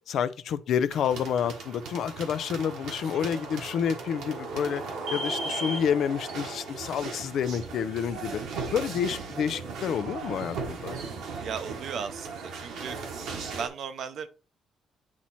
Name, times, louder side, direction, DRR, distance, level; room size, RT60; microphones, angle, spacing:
voice 1, 0.1-4.8 5.1-8.4 8.7-11.0, left 8 dB, 70° left, 0.5 m, -29 dB
sound 1, 0.9-13.7, right 3 dB, 85° right, 1.4 m, -37 dB
voice 2, 11.4-13.0 13.5-14.3, right 7 dB, 65° right, 0.7 m, -36 dB
8.5 x 3.1 x 4.2 m
cardioid pair, 90°, 0 cm